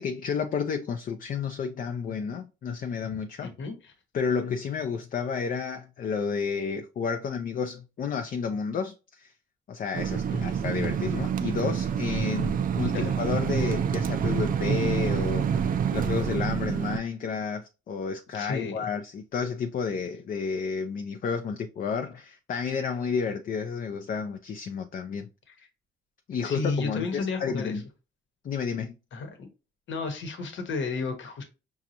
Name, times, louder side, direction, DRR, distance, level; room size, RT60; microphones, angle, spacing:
voice 1, 0.0-3.5 4.1-9.3 9.7-25.3 26.3-27.8 28.4-28.9, left 6 dB, 45° left, 0.4 m, -31 dB
voice 2, 3.4-3.7 10.3-10.5 12.9-13.1 18.3-18.9 25.5-25.6 26.4-27.8 29.1-29.5 29.9-31.4, left 4 dB, 65° left, 1.0 m, -32 dB
sound 1, 9.9-17.0, right 7 dB, 45° right, 0.4 m, -27 dB
4.9 x 2.4 x 2.8 m
cardioid pair, 115°, 21 cm